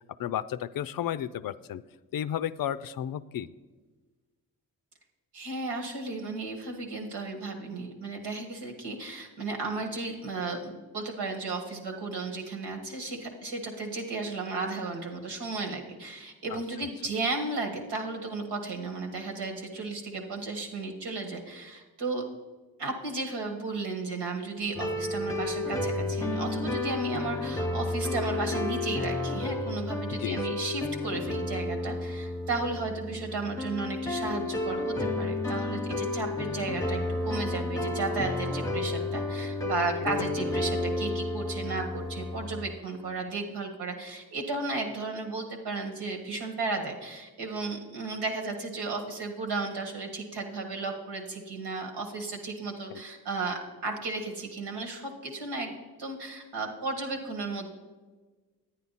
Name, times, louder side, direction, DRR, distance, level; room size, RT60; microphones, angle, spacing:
voice 1, 0.2-1.8 2.1-3.5 16.5-16.6 30.2-30.6 52.9-53.0, left 10 dB, 60° left, 15 dB, 0.5 m, -33 dB
voice 2, 5.3-22.2 22.8-57.7, right 3 dB, 75° right, 2 dB, 1.7 m, -34 dB
sound 1, 24.8-42.8, left 2 dB, 10° left, 1.0 m, -31 dB
9.8 x 9.5 x 4.1 m, 1.3 s
supercardioid pair, 40°, 40 cm